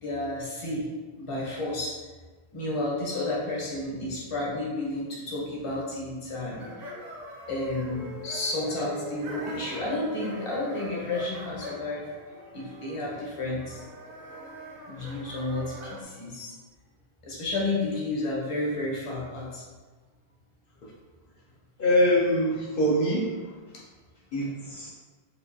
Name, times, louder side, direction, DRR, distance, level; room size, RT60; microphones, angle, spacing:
voice 1, 0.0-0.8 1.2-2.0 2.5-6.9 7.5-12.0 12.5-13.8 14.9-16.5 17.2-19.6, left 2 dB, 35° left, -4 dB, 0.8 m, -31 dB
sound 1, 6.5-16.0, equal, 70° right, 1.0 m, -42 dB
voice 2, 21.8-23.6 24.3-24.9, equal, 60° left, -6 dB, 0.8 m, -24 dB
4.9 x 2.3 x 2.6 m, 1.3 s
omnidirectional pair, 1.1 m